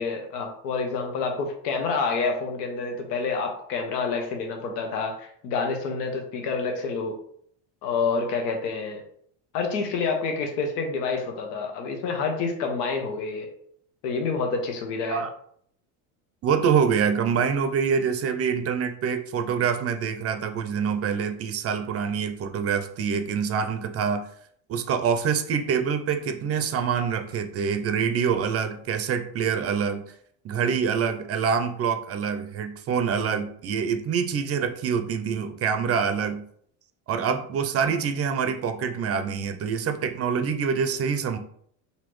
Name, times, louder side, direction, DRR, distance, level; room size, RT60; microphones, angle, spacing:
voice 1, 0.0-7.1 7.8-9.0 9.5-13.5 14.0-15.2, left 4 dB, 90° left, 3 dB, 0.9 m, -28 dB
voice 2, 16.4-24.3 24.7-30.0 30.4-36.4 37.1-41.4, right 6 dB, 30° right, 8 dB, 0.5 m, -25 dB
4.2 x 2.6 x 3.0 m, 0.64 s
supercardioid pair, 100°, 47 cm